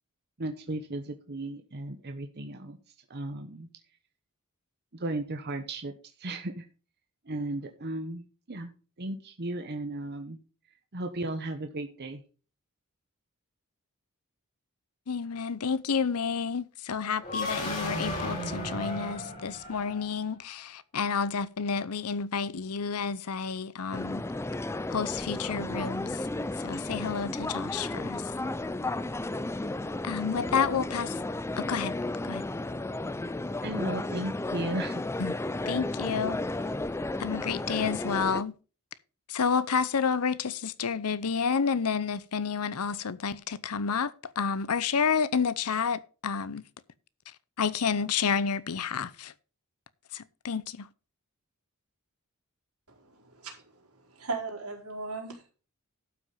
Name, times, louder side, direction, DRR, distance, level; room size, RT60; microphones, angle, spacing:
voice 1, 0.4-2.8 3.1-3.7 4.9-5.9 6.2-6.6 7.3-8.7 9.0-10.4 10.9-12.2 33.6-35.0, right 2 dB, 50° right, 1.1 m, -35 dB
voice 2, 15.1-24.2 24.9-26.3 26.6-28.2 30.0-31.2 31.6-31.9 32.2-32.4 35.2-35.4 35.7-36.4 37.2-38.6 39.3-46.6 47.6-49.3 50.1-50.9, left 6 dB, 85° left, 0.7 m, -30 dB
sound 1, 17.2-20.2, left 1 dB, 35° left, 4.3 m, -34 dB
sound 2, 23.9-38.4, left 2 dB, 10° left, 0.4 m, -33 dB
voice 3, 52.9-53.6 54.1-55.5, right 3 dB, 85° right, 4.4 m, -37 dB
12.0 x 6.0 x 5.6 m
head